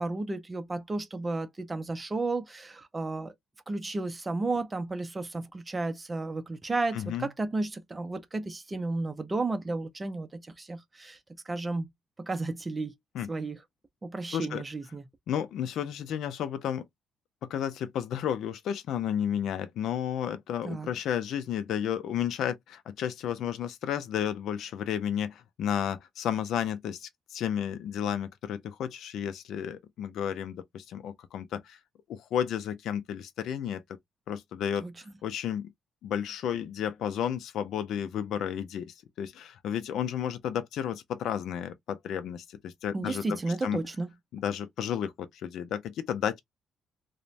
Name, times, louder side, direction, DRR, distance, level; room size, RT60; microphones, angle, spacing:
voice 1, 0.0-3.3 3.7-11.2 11.5-11.9 12.2-12.9 13.3-13.6 14.0-15.0 20.6-20.9 34.8-34.9 42.9-44.1, right 3 dB, 25° right, 0.5 m, -33 dB
voice 2, 6.9-7.3 13.1-13.3 14.3-14.6 15.3-16.9 17.5-31.8 32.1-33.8 34.3-35.7 36.0-43.8 44.3-46.4, left 9 dB, 75° left, 0.4 m, -32 dB
2.4 x 2.1 x 3.1 m
cardioid pair, 90°, 0 cm